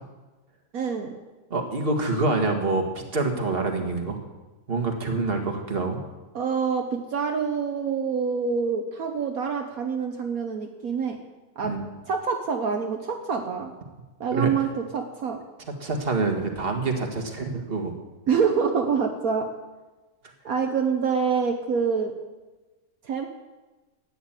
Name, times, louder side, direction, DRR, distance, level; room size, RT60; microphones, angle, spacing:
voice 1, 0.7-1.1 6.3-11.2 11.6-11.7 12.1-13.7 14.2-15.4 18.3-19.5 20.4-22.1 23.0-23.3, right 6 dB, 70° right, 3 dB, 1.5 m, -26 dB
voice 2, 1.5-4.2 4.7-6.0 11.6-11.8 14.3-14.5 15.8-17.9, right 3 dB, 40° right, 3 dB, 2.1 m, -26 dB
13.5 x 9.3 x 9.1 m, 1.2 s
omnidirectional pair, 1.6 m